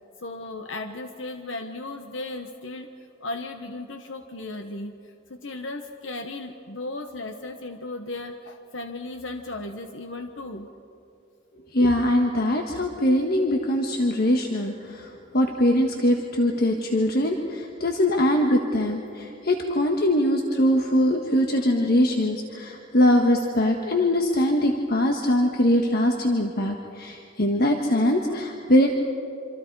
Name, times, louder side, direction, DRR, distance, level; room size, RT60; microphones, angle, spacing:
voice 1, 0.2-2.9 3.2-5.0 5.3-10.7 21.6-21.7 28.3-28.4, left 2 dB, 90° left, 6 dB, 1.1 m, -36 dB
voice 2, 11.7-15.1 15.3-28.9, left 1 dB, 55° left, 2 dB, 1.4 m, -22 dB
26.5 x 26.5 x 4.7 m, 2.9 s
head